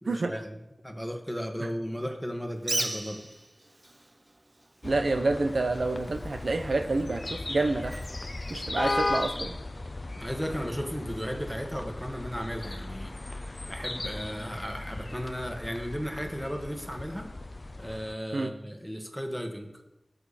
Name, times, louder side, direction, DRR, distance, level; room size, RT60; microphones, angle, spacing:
voice 1, 0.0-0.6 0.8-3.2 10.2-13.1 13.6-17.3 17.8-19.7, equal, ahead, 3 dB, 1.7 m, -35 dB
Bird, 2.6-9.2, right 1 dB, 30° right, 0.7 m, -39 dB
sound 1, 4.8-18.1, left 2 dB, 45° left, 0.5 m, -36 dB
voice 2, 4.8-8.0 8.5-9.6 18.3-18.5, right 2 dB, 80° right, 6 dB, 0.8 m, -28 dB
16.5 x 6.7 x 4.3 m, 0.93 s
wide cardioid pair, 65°, 0 cm